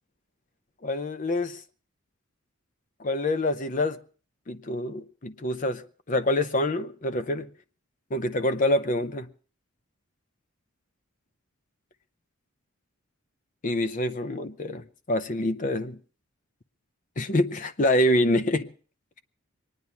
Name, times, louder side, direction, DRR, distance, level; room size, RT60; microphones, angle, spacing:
voice 1, 0.8-1.6 3.0-4.0 4.5-7.5 8.1-9.3 13.6-16.0 17.2-18.7, left 1 dB, 35° left, 0.6 m, -26 dB
23.5 x 9.6 x 5.8 m
head